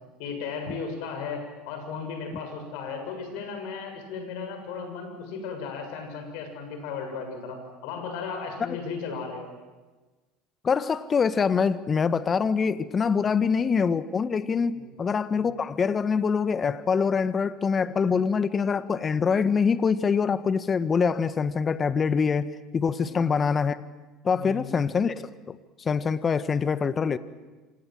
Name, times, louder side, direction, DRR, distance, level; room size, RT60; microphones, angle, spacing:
voice 1, 0.2-9.5 14.8-14.9 15.3-15.4 23.0-23.2 24.3-24.7, left 5 dB, 65° left, 5 dB, 7.3 m, -35 dB
voice 2, 10.6-23.8 24.2-27.2, left 6 dB, 30° left, 14 dB, 1.4 m, -25 dB
27.5 x 26.5 x 7.8 m, 1.3 s
hypercardioid pair, 75°, 0 cm